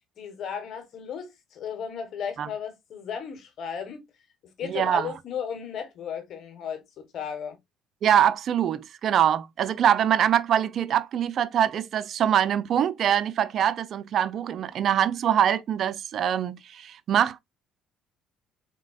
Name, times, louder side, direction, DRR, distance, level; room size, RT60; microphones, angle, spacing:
voice 1, 0.2-4.0 4.6-7.6, left 7 dB, 60° left, 1.4 m, -35 dB
voice 2, 4.6-5.1 8.0-17.4, right 9 dB, 60° right, 0.4 m, -24 dB
4.1 x 3.8 x 2.4 m
supercardioid pair, 75°, 0 cm